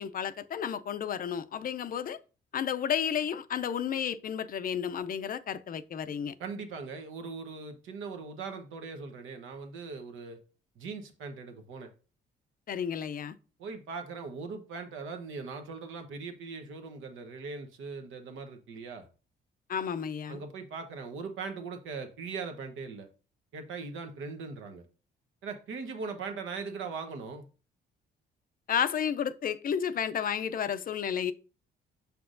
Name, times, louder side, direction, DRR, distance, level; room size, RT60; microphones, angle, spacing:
voice 1, 0.0-2.2 2.5-6.3 12.7-13.4 19.7-20.4 28.7-31.3, left 8 dB, 45° left, 0.5 m, -32 dB
voice 2, 6.4-10.4 10.8-11.9 13.6-19.1 20.3-23.1 23.5-24.8 25.4-27.5, right 4 dB, 80° right, 1.0 m, -40 dB
6.7 x 5.8 x 2.5 m
cardioid pair, 90°, 20 cm